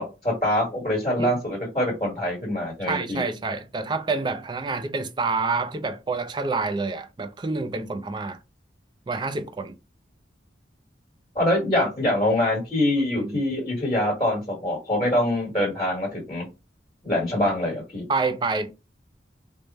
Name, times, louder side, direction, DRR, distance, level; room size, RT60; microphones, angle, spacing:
voice 1, 0.0-3.2 11.3-16.4 17.0-18.0, left 1 dB, 25° left, 1.3 m, -24 dB
voice 2, 2.8-8.4 9.1-9.7 13.2-13.4 18.1-18.7, right 3 dB, 25° right, 0.3 m, -28 dB
3.3 x 2.1 x 4.0 m
head